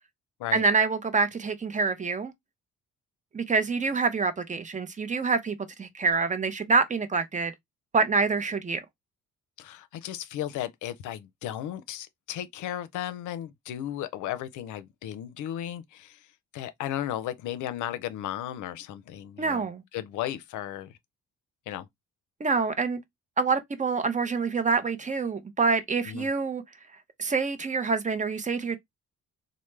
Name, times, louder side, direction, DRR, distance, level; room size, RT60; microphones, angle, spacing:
voice 1, 0.5-2.3 3.3-7.5 7.9-8.8 19.4-19.8 22.4-23.0 23.4-26.6 27.2-28.8, right 4 dB, 25° right, 0.5 m, -26 dB
voice 2, 9.6-16.2 16.5-19.7 19.9-20.9 21.7-21.9 26.1-26.3, left 12 dB, 80° left, 0.5 m, -35 dB
3.2 x 2.0 x 3.1 m
cardioid pair, 90°, 30 cm